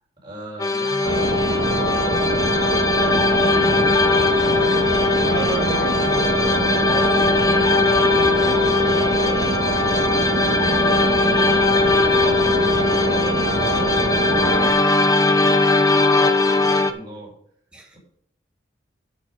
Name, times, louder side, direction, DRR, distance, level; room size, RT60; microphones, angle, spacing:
voice 1, 0.2-4.5 8.2-13.9 14.4-17.3 17.9-18.0, right 1 dB, 25° right, -4 dB, 4.6 m, -40 dB
sound 1, 0.6-16.9, left 3 dB, 20° left, 0.6 m, -19 dB
sound 2, 1.0-14.7, right 2 dB, 60° right, 1.4 m, -24 dB
voice 2, 5.2-7.1 17.7-18.0, right 2 dB, 5° right, -1 dB, 2.2 m, -32 dB
8.9 x 7.3 x 5.4 m, 0.69 s
head